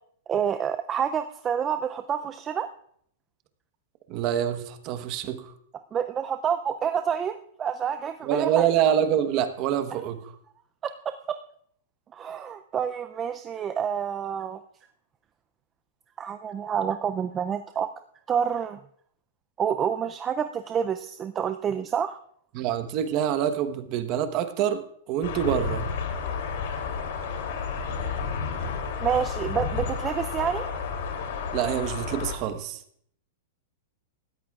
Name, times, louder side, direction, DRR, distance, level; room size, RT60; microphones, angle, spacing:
voice 1, 0.3-2.7 5.9-8.7 10.8-10.9 12.1-14.6 16.2-17.9 18.3-18.8 19.6-22.2 29.0-30.7, right 8 dB, 20° right, 9 dB, 0.4 m, -28 dB
voice 2, 4.1-5.5 8.2-10.3 22.5-25.9 31.5-32.8, right 10 dB, 35° right, 9 dB, 1.1 m, -26 dB
sound 1, 25.2-32.3, left 5 dB, 60° left, 2.9 m, -31 dB
19.0 x 14.0 x 2.4 m, 0.65 s
supercardioid pair, 155°, 0 cm